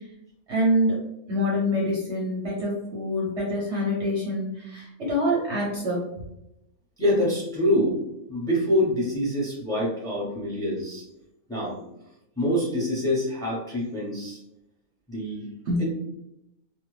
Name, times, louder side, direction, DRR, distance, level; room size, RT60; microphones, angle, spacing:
voice 1, 0.5-0.9 1.3-6.0 15.7-15.8, equal, 60° right, -4 dB, 0.9 m, -25 dB
voice 2, 7.0-8.0 8.3-11.0 11.5-11.8 12.4-14.4 15.1-15.5 15.8-15.9, left 1 dB, 5° left, -6 dB, 0.8 m, -25 dB
2.5 x 2.3 x 3.1 m, 0.84 s
omnidirectional pair, 1.6 m